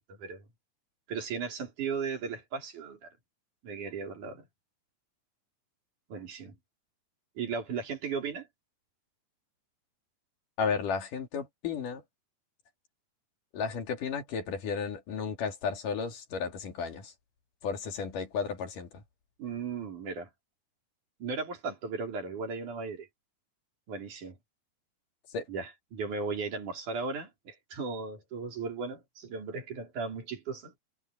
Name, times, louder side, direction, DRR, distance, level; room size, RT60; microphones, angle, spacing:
voice 1, 0.1-0.4 1.1-3.2 3.6-4.5 6.1-6.6 7.4-8.5 19.4-20.3 21.2-23.1 23.9-24.4 25.5-30.8, right 5 dB, 70° right, 5.9 m, -36 dB
voice 2, 10.6-12.0 13.5-17.1 17.6-19.0 25.3-25.5, left 5 dB, 80° left, 4.1 m, -33 dB
omnidirectional pair, 3.7 m